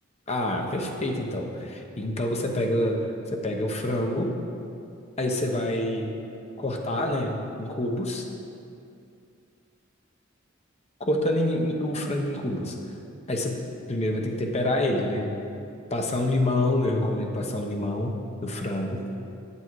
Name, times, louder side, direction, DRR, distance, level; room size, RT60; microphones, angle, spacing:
voice 1, 0.3-4.4 5.2-6.2 6.6-8.2 11.0-12.7 13.3-13.6 13.9-15.3 15.9-19.1, left 1 dB, 35° left, 2 dB, 0.9 m, -27 dB
9.9 x 7.3 x 4.7 m, 2.6 s
head